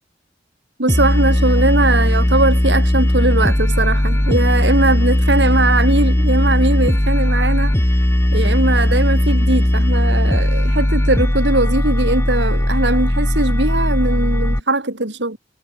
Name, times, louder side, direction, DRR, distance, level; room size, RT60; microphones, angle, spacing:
voice 1, 0.8-7.8 8.3-15.4, right 2 dB, 90° right, 3.7 m, -20 dB
sound 1, 0.9-14.6, equal, 15° left, 1.2 m, -17 dB
head